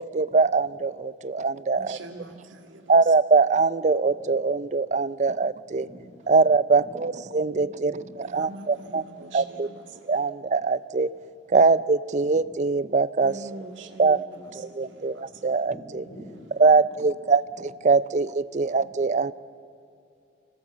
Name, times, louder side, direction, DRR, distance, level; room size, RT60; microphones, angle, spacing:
voice 1, 0.0-2.0 2.9-5.9 6.3-7.9 8.3-9.0 9.3-9.7 10.1-11.1 11.5-13.4 14.0-14.2 14.8-15.7 16.6-17.4 17.8-19.3, right 4 dB, 40° right, 0.4 m, -22 dB
voice 2, 1.7-3.1 8.2-10.3 13.2-15.6, right 2 dB, 90° right, 1.9 m, -44 dB
voice 3, 5.6-6.1 6.5-8.1 8.6-8.8 11.1-11.3 12.3-12.5 15.2-16.5 16.8-17.1 17.6-17.7 18.7-18.9, equal, 60° left, 3.0 m, -48 dB
26.0 x 17.5 x 7.3 m
head